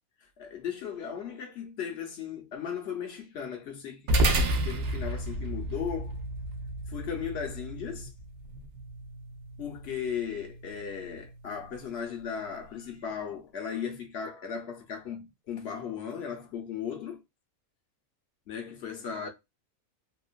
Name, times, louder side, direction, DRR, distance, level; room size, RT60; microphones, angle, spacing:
voice 1, 0.4-6.2 6.9-8.1 9.6-17.2 18.5-19.3, left 7 dB, 55° left, 0.9 m, -37 dB
sound 1, 4.1-12.7, right 1 dB, 60° right, 0.9 m, -32 dB
3.0 x 2.4 x 2.4 m
omnidirectional pair, 1.5 m